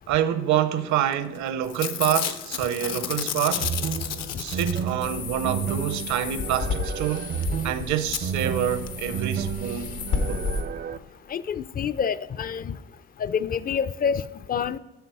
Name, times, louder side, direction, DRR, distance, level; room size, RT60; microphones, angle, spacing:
voice 1, 0.1-3.7 4.4-7.3 7.6-10.0 10.3-10.5, right 10 dB, 70° right, 0.7 m, -27 dB
Packing tape duct tape / Tearing, 1.1-1.4 1.6-5.2 7.2-7.3 7.4-7.5 8.1-8.2 8.9-9.0 9.2-9.3, left 9 dB, 65° left, 0.7 m, -31 dB
sound 1, 3.6-11.0, right 8 dB, 35° right, 0.4 m, -32 dB
sound 2, 5.0-10.6, left 4 dB, 80° left, 1.3 m, -32 dB
voice 2, 11.3-12.8 13.2-14.8, left 7 dB, 30° left, 0.4 m, -27 dB
8.0 x 6.6 x 4.7 m
supercardioid pair, 75°, 29 cm